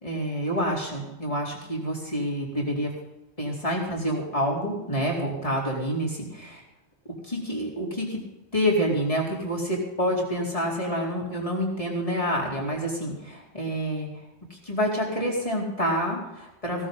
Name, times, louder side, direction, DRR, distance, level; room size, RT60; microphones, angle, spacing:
voice 1, 0.0-2.9 3.4-6.5 7.2-8.2 8.5-14.1 14.5-16.9, equal, 30° left, -2 dB, 4.3 m, -28 dB
16.5 x 14.5 x 4.0 m, 0.96 s
omnidirectional pair, 1.2 m